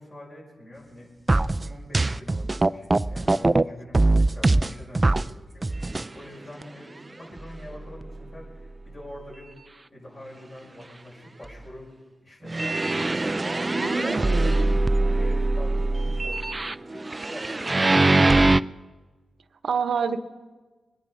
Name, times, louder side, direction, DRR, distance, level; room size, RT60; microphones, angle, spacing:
voice 1, 0.0-5.7 6.1-9.5 9.9-11.9 12.2-14.6 15.0-18.5, left 1 dB, 45° left, -3 dB, 6.3 m, -44 dB
sound 1, 1.3-3.6 3.9-5.3 5.6-6.1 6.6-6.7 7.4-7.5 8.0-8.1 12.5-18.6, right 2 dB, 30° right, 0.4 m, -22 dB
voice 2, 13.7-14.7 19.6-20.2, right 5 dB, 70° right, 10 dB, 1.0 m, -27 dB
22.0 x 10.5 x 5.3 m, 1.3 s
supercardioid pair, 50°, 0 cm